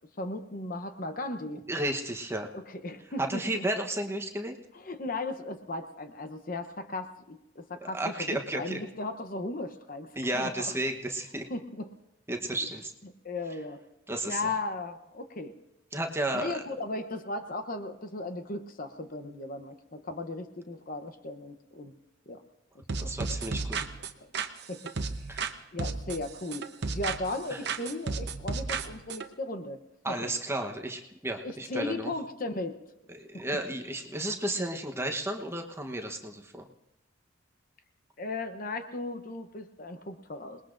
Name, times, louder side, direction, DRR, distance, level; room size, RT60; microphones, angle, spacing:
voice 1, 0.2-1.7 2.5-3.6 4.7-10.7 11.5-11.9 12.6-12.7 13.0-13.8 14.3-15.6 16.3-21.9 22.3-22.4 22.9-23.5 23.8-23.9 24.2-24.3 24.7-24.9 25.2-25.4 25.7-29.8 30.1-30.2 31.4-32.8 33.3-33.4 38.2-40.6, left 2 dB, 45° left, 8 dB, 0.8 m, -36 dB
voice 2, 1.7-2.5 3.2-4.6 7.8-8.8 10.2-11.5 12.3-12.9 14.1-14.5 15.9-16.6 23.0-23.8 25.3-25.5 27.5-27.6 30.0-32.1 33.1-36.7, right 1 dB, 10° right, 3 dB, 1.0 m, -33 dB
sound 1, 22.9-25.5 25.8-27.4 27.6-29.3, right 4 dB, 55° right, 0.9 m, -33 dB
27.0 x 20.5 x 2.6 m, 0.90 s
head